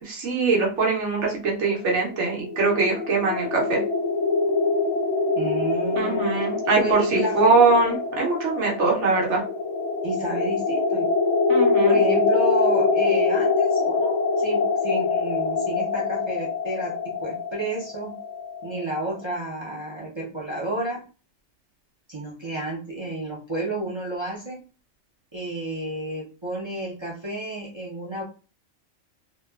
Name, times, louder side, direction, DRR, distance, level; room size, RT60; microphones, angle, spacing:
voice 1, 0.0-3.8 6.0-9.4 11.5-12.0, right 3 dB, 65° right, -2 dB, 0.9 m, -22 dB
sound 1, 2.1-18.9, left 4 dB, 65° left, 0.7 m, -24 dB
voice 2, 5.4-6.4 6.8-7.4 10.0-11.1 11.8-18.2 18.6-21.0 22.1-24.6 25.3-28.2, right 1 dB, 35° right, -5 dB, 0.4 m, -31 dB
2.7 x 2.3 x 2.2 m, 0.35 s
omnidirectional pair, 1.4 m